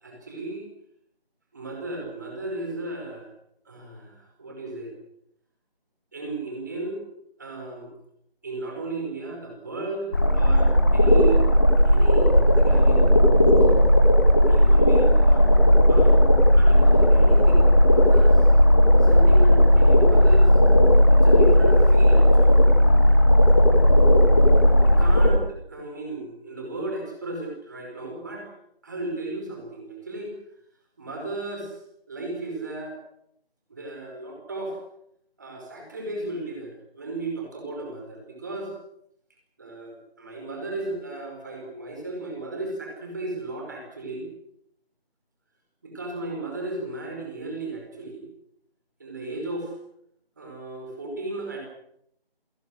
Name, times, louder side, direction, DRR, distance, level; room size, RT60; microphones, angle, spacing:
voice 1, 0.0-0.7 1.5-3.3 3.7-4.9 6.1-7.0 7.4-7.9 8.4-10.1 10.3-11.4 11.8-13.2 14.5-15.5 15.9-16.2 16.5-18.4 19.0-20.5 21.1-22.5 24.8-28.5 28.8-30.3 31.0-31.7 32.1-33.0 33.7-34.8 35.4-38.7 39.6-44.3 45.8-48.2 49.0-49.7 50.4-51.6, right 2 dB, 20° right, 1 dB, 4.9 m, -35 dB
sound 1, 10.1-25.3, equal, 20° left, 2.2 m, -16 dB
29.5 x 17.5 x 6.5 m, 0.73 s
figure-of-eight pair, 170°, 31 cm